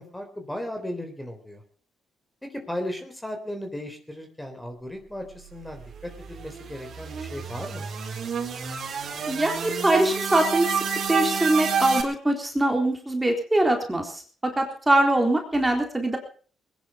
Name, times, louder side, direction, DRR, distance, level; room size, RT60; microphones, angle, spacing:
voice 1, 0.0-1.6 2.5-7.9, left 1 dB, 10° left, 5 dB, 3.7 m, -36 dB
sound 1, 5.6-12.0, right 6 dB, 55° right, 4.4 m, -29 dB
voice 2, 9.3-10.8 11.1-16.2, right 1 dB, 15° right, 3 dB, 3.9 m, -23 dB
20.5 x 10.5 x 5.9 m, 0.42 s
cardioid pair, 90°, 0 cm